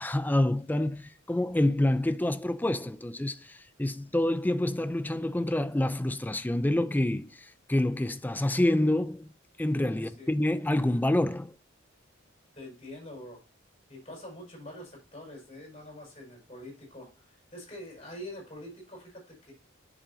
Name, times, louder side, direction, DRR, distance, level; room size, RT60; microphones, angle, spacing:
voice 1, 0.0-9.3 9.6-11.5, left 1 dB, 10° left, 0.4 m, -27 dB
voice 2, 9.9-10.3 12.5-13.4 13.9-19.5, left 1 dB, 30° left, 5.3 m, -45 dB
10.5 x 6.9 x 2.8 m
head